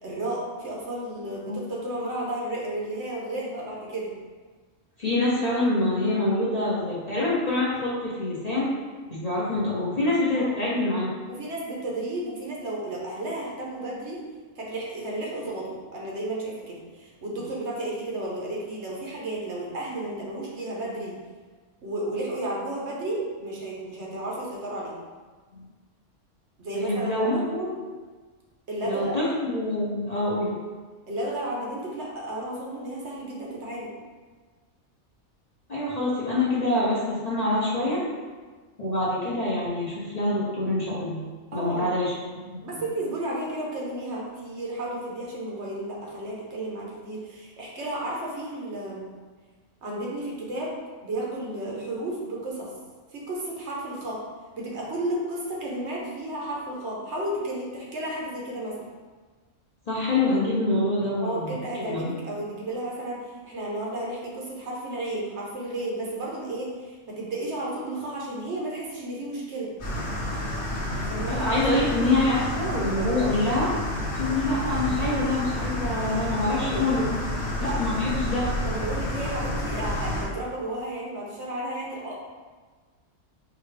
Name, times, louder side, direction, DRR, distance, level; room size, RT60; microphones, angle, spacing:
voice 1, 0.0-4.1 10.3-10.6 11.3-14.2 14.6-21.1 21.8-24.9 26.6-27.4 28.7-29.2 31.1-33.9 41.5-42.0 42.6-49.1 49.8-52.7 53.1-54.2 54.5-58.8 61.2-69.7 70.9-71.8 78.6-82.2, right 1 dB, 65° right, -4 dB, 1.1 m, -33 dB
voice 2, 5.0-8.7 9.1-11.1 26.7-27.8 28.8-30.6 35.7-38.1 38.8-41.2 41.5-42.1 42.4-42.8 59.9-62.1 71.3-73.7 74.2-77.1 77.6-78.5, left 2 dB, 40° left, -8 dB, 0.7 m, -25 dB
sound 1, 69.8-80.2, left 1 dB, 60° left, 1.2 m, -30 dB
4.7 x 2.4 x 3.2 m, 1.4 s
omnidirectional pair, 1.3 m